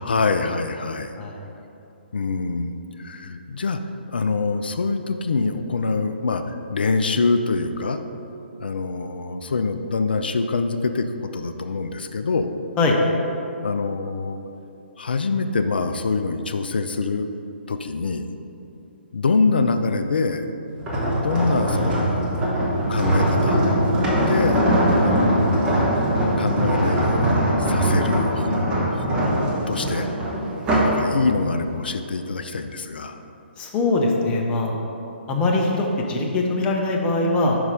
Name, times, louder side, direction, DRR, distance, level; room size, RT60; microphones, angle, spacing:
voice 1, 0.0-1.2 2.1-3.8 4.1-8.0 8.6-12.5 13.6-14.4 15.0-17.3 17.7-18.3 19.1-20.5 21.2-22.3 22.9-23.6 24.2-24.6 25.0-25.7 26.4-29.4 29.7-30.1 30.8-33.2, left 4 dB, 60° left, 8 dB, 0.3 m, -25 dB
sound 1, 20.8-31.0 31.5-31.7, right 1 dB, 15° right, 1.0 m, -21 dB
voice 2, 33.6-34.7 35.3-37.6, left 2 dB, 15° left, 0 dB, 0.6 m, -22 dB
5.4 x 4.7 x 5.1 m, 2.9 s
figure-of-eight pair, 130°, 6 cm